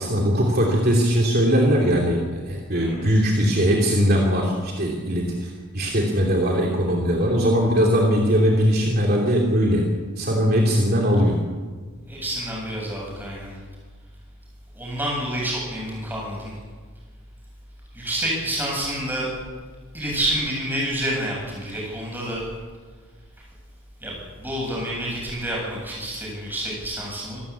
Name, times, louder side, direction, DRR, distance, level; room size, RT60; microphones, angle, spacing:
voice 1, 0.0-9.9 10.2-11.4, equal, 45° right, -1 dB, 2.9 m, -20 dB
voice 2, 12.1-13.6 14.7-16.6 17.9-19.3 19.9-22.4 24.0-27.4, right 1 dB, 10° right, -3 dB, 7.8 m, -28 dB
26.5 x 13.5 x 8.5 m, 1.5 s
head